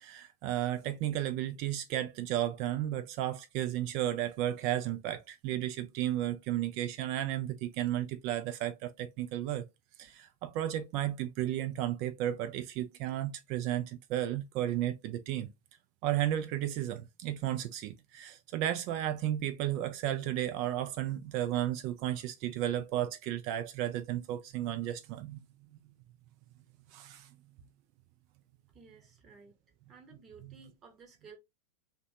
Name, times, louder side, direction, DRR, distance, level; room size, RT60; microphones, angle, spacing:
voice 1, 0.0-9.6 10.0-15.5 16.0-25.4 26.9-27.3 30.4-30.6, right 12 dB, 45° right, 0.3 m, -33 dB
voice 2, 28.7-29.6 29.9-31.4, right 5 dB, 25° right, 0.9 m, -55 dB
2.8 x 2.2 x 2.7 m
figure-of-eight pair, 90°, 0 cm